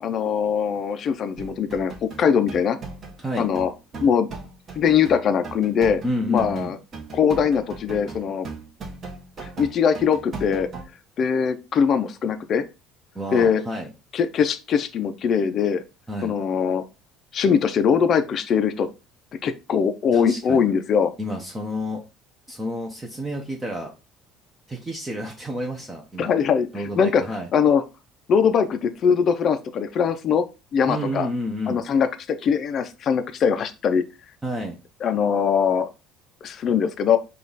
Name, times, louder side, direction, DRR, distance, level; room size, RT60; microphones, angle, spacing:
voice 1, 0.0-2.8 3.4-3.7 4.0-4.3 4.8-6.0 6.3-6.8 7.1-8.5 9.4-10.7 11.2-12.6 13.3-13.6 14.1-15.8 16.2-16.8 17.3-18.9 19.4-21.1 26.2-27.2 27.5-27.8 28.3-30.4 30.7-31.3 31.7-34.0 35.0-35.9 36.4-37.2, left 7 dB, 40° left, 8 dB, 0.4 m, -21 dB
sound 1, 1.4-10.8, right 4 dB, 30° right, 1.1 m, -38 dB
voice 2, 6.0-6.8 13.1-13.9 16.1-16.3 20.1-20.7 21.2-22.0 22.5-23.9 24.7-26.3 26.7-27.5 30.9-31.8 34.4-34.8, equal, 15° right, 0 dB, 0.7 m, -30 dB
5.2 x 2.4 x 3.9 m, 0.29 s
cardioid pair, 140°, 0 cm